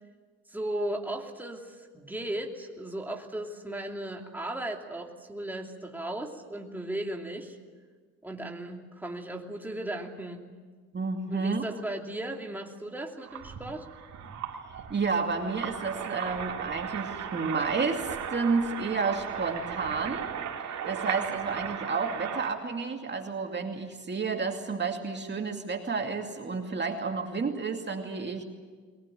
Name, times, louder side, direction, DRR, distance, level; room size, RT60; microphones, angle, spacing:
voice 1, 0.5-7.6 8.2-10.4 11.3-13.9, right 1 dB, 5° right, 1 dB, 2.8 m, -36 dB
voice 2, 10.9-11.6 14.9-20.3 20.8-28.4, right 4 dB, 35° right, 3 dB, 2.5 m, -31 dB
sound 1, 13.2-22.5, right 8 dB, 65° right, 2.9 m, -36 dB
21.5 x 20.0 x 9.1 m, 1.5 s
cardioid pair, 90°, 30 cm